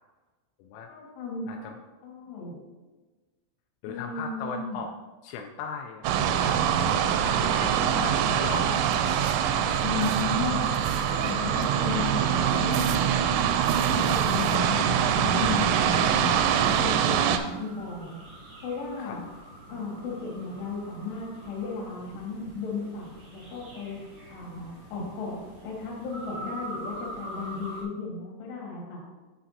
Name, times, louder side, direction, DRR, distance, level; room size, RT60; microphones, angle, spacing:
voice 1, 0.9-1.7 2.0-2.6 3.9-4.8 9.8-10.6 11.1-13.4 13.7-16.4 16.8-18.2 18.6-19.3 19.7-24.0 24.3-29.0, left 4 dB, 60° left, -3 dB, 3.6 m, -35 dB
voice 2, 3.8-4.9 5.2-6.6 6.9-9.2 9.5-9.8 14.8-14.9 19.0-19.2, left 6 dB, 85° left, 2 dB, 3.2 m, -38 dB
sound 1, 6.0-17.4, right 8 dB, 85° right, 3.0 m, -24 dB
sound 2, 10.4-27.8, right 1 dB, 60° right, 1.2 m, -43 dB
9.7 x 5.8 x 2.8 m, 1.2 s
omnidirectional pair, 5.8 m